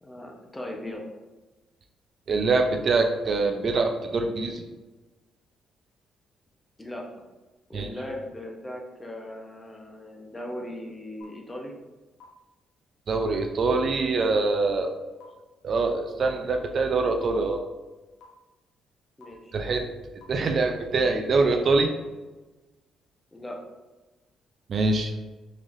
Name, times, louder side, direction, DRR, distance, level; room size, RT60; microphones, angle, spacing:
voice 1, 0.0-1.2 6.8-7.2 7.7-11.8 19.2-19.6 23.3-23.6, left 1 dB, 15° left, 0 dB, 0.7 m, -38 dB
voice 2, 2.3-4.7 7.7-7.9 13.1-14.9 15.6-17.6 19.5-19.9 20.3-21.9 24.7-25.1, right 3 dB, 50° right, 4 dB, 0.4 m, -24 dB
sound 1, 11.2-11.3 12.2-12.3 13.2-13.3 14.2-14.3 15.2-15.3 16.2-16.3 17.2-17.3 18.2-18.3 19.2-19.3 20.2-20.3, left 7 dB, 90° left, 0.7 m, -49 dB
3.9 x 3.0 x 2.6 m, 1.2 s
cardioid pair, 90°, 0 cm